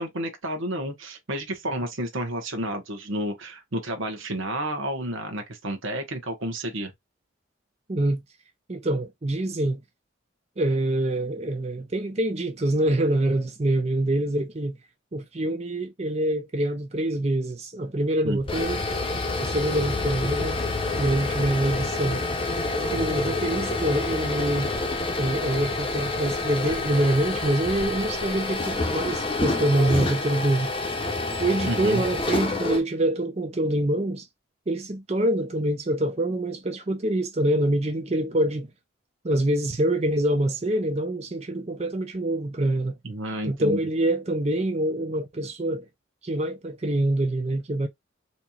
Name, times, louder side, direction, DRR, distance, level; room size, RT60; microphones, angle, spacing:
voice 1, 0.0-6.9 18.2-18.4 31.7-32.0 43.0-43.8, right 1 dB, 80° right, 1.1 m, -30 dB
voice 2, 7.9-8.2 8.7-9.8 10.6-14.8 15.1-18.8 19.4-20.6 21.0-22.2 22.9-24.7 25.2-30.7 31.4-34.3 34.7-38.7 39.2-43.0 43.4-45.8 46.2-47.9, right 1 dB, 30° right, 0.5 m, -25 dB
sound 1, 18.3-32.8, left 2 dB, 25° left, 0.8 m, -28 dB
4.3 x 2.9 x 2.4 m
head